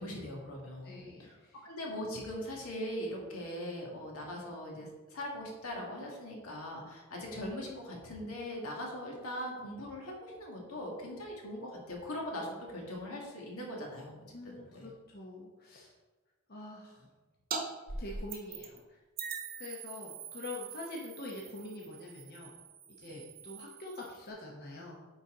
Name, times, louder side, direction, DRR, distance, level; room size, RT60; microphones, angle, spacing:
voice 1, 0.0-1.4 1.6-14.2 14.5-14.9 23.1-23.2, left 1 dB, 80° left, -1 dB, 1.9 m, -41 dB
voice 2, 0.8-1.7 14.3-15.9 16.5-17.1 18.0-19.0 19.6-22.5 23.0-25.0, left 2 dB, 45° left, -2 dB, 0.9 m, -45 dB
sound 1, 17.5-17.6 17.9-18.8 19.2-24.3, right 5 dB, 40° right, 0.9 m, -43 dB
9.7 x 4.1 x 3.8 m, 1.2 s
head